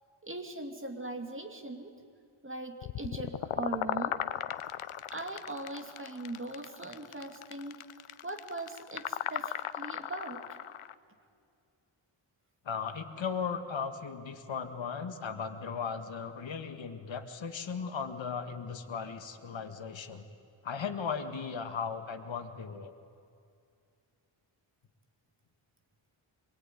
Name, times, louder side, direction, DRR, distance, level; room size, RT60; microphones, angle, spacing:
voice 1, 0.2-1.9 2.4-4.2 5.1-7.8 8.2-10.5, right 2 dB, 25° right, 4 dB, 2.6 m, -40 dB
sound 1, 2.8-10.9, left 11 dB, 80° left, 0.9 m, -37 dB
voice 2, 12.7-20.3 20.6-22.9, left 6 dB, 65° left, 7 dB, 1.9 m, -37 dB
26.0 x 22.5 x 9.9 m, 2.4 s
wide cardioid pair, 130°, 49 cm